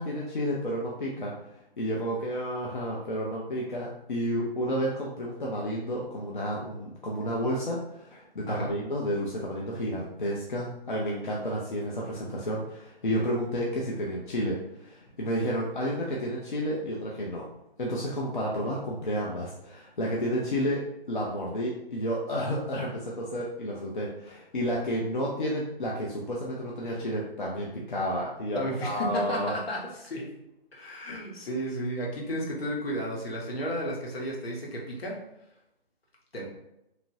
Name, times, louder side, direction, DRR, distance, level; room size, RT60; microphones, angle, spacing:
voice 1, 0.0-1.3 1.8-17.5 17.8-29.5 31.1-31.2, equal, 55° left, -3 dB, 0.5 m, -31 dB
voice 2, 28.5-30.3 30.7-35.2 36.3-36.5, equal, 75° left, -2 dB, 1.0 m, -33 dB
3.0 x 2.5 x 2.5 m, 0.85 s
hypercardioid pair, 180°, 31 cm